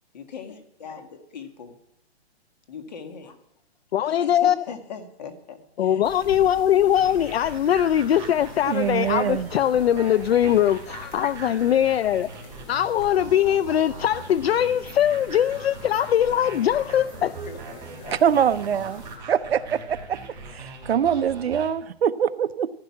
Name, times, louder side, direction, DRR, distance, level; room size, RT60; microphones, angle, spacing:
voice 1, 0.1-1.8 2.7-3.4 4.1-6.0 10.9-11.3 17.5-18.2, left 6 dB, 40° left, 7 dB, 1.8 m, -40 dB
voice 2, 3.9-4.5 5.8-12.3 12.7-17.4, left 10 dB, 65° left, 17 dB, 0.5 m, -21 dB
sound 1, 6.0-19.2, left 1 dB, 10° left, 1.2 m, -45 dB
sound 2, 7.0-21.7, right 3 dB, 10° right, 2.7 m, -41 dB
voice 3, 8.7-9.5 18.1-19.0 19.3-22.7, right 8 dB, 65° right, 14 dB, 0.7 m, -24 dB
15.5 x 10.5 x 5.8 m, 0.74 s
hypercardioid pair, 175°, 33 cm